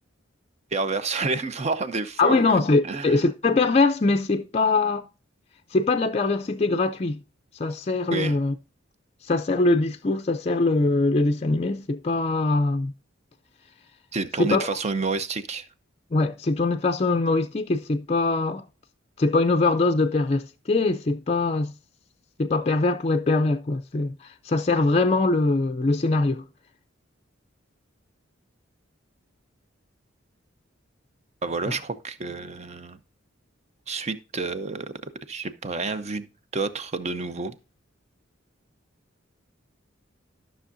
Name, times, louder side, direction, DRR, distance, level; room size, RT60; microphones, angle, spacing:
voice 1, 0.7-3.2 8.1-8.4 14.1-15.6 31.4-33.0 33.9-37.5, right 3 dB, 35° right, 0.7 m, -29 dB
voice 2, 2.2-5.1 5.7-7.2 7.6-8.5 9.2-12.9 14.4-14.7 16.1-18.6 19.2-21.7 22.4-26.4 31.7-31.8, left 3 dB, 30° left, 0.5 m, -22 dB
12.5 x 6.2 x 2.6 m
head